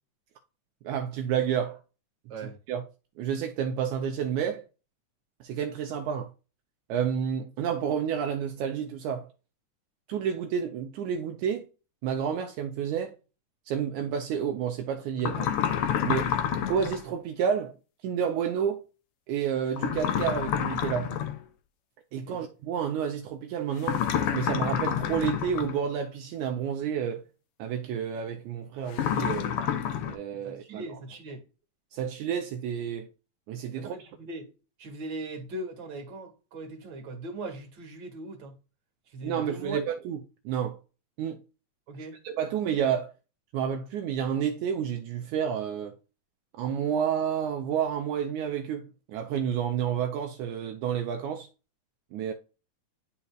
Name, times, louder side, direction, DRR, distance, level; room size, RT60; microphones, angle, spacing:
voice 1, 0.8-1.8 2.7-2.8 3.2-4.7 5.4-6.3 6.9-9.3 10.1-11.7 12.0-13.2 13.7-15.5 16.0-16.3 16.7-17.8 18.0-18.8 19.3-21.1 22.1-24.0 24.3-27.3 27.6-29.6 30.1-31.0 31.9-33.1 33.5-34.0 39.2-40.8 41.2-41.4 42.2-43.1 43.5-46.0 46.6-51.5 52.1-52.3, right 8 dB, 80° right, 2.0 m, -30 dB
sound 1, 15.2-17.0 19.8-21.4 23.8-25.8 28.9-30.1, left 9 dB, 85° left, 1.2 m, -28 dB
voice 2, 22.1-22.5 30.4-31.4 33.7-34.5 34.8-38.5 39.1-39.8 41.9-42.2, right 2 dB, 40° right, 2.3 m, -39 dB
11.0 x 4.2 x 2.3 m
omnidirectional pair, 3.5 m